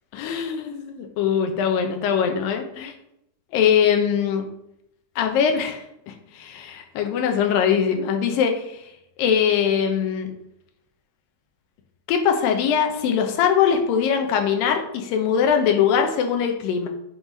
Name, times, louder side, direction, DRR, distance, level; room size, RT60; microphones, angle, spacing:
voice 1, 0.1-2.9 3.5-4.5 5.2-5.8 6.3-8.9 9.2-10.3 12.1-16.9, left 7 dB, 90° left, 4 dB, 2.5 m, -21 dB
7.6 x 3.1 x 5.2 m, 0.81 s
omnidirectional pair, 3.9 m